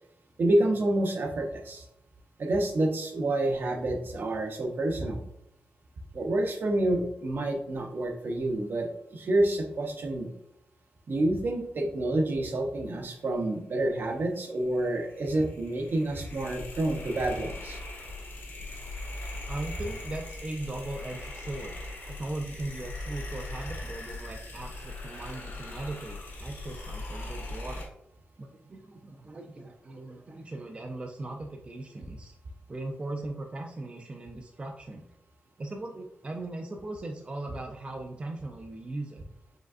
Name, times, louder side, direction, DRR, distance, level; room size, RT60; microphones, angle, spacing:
voice 1, 0.4-1.9 2.4-5.2 6.1-10.3 11.1-17.8, right 1 dB, 55° right, 3 dB, 0.8 m, -28 dB
sound 1, 14.8-27.9, left 2 dB, 90° left, 1.3 m, -40 dB
voice 2, 19.5-21.8 22.1-27.9 28.4-32.4 32.7-35.1 35.6-39.2, right 2 dB, 30° right, 3 dB, 0.4 m, -39 dB
5.1 x 3.4 x 2.4 m, 0.81 s
wide cardioid pair, 135°, 4 cm